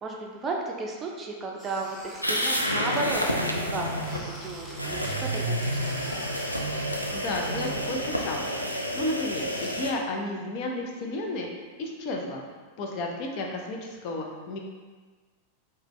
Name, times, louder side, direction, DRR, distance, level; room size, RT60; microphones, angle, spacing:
voice 1, 0.0-3.9 4.2-6.0, right 3 dB, 20° right, 0 dB, 0.5 m, -34 dB
Squeak, 1.6-3.0 3.8-7.5 7.8-9.8, left 1 dB, 10° left, 0.8 m, -47 dB
sound 1, 2.2-4.2 4.8-9.9, equal, 90° left, 0.4 m, -29 dB
sound 2, 3.0-8.3, right 1 dB, 85° right, 0.5 m, -38 dB
voice 2, 6.9-11.5 11.8-12.4 12.8-14.6, left 2 dB, 45° left, 1 dB, 0.6 m, -33 dB
4.9 x 2.2 x 3.1 m, 1.4 s
figure-of-eight pair, 90°, 0 cm